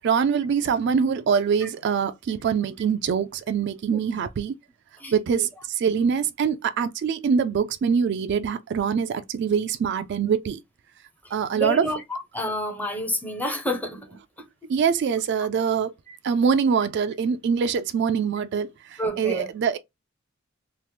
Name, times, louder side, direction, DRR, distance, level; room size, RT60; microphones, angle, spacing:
voice 1, 0.0-4.5 5.1-10.6 11.3-11.9 14.7-15.9 16.2-19.8, right 6 dB, 60° right, 0.3 m, -24 dB
voice 2, 5.0-5.5 11.5-14.0 14.6-14.7 16.1-16.2 19.0-19.5, equal, 10° left, 0.6 m, -29 dB
2.9 x 2.0 x 3.2 m
head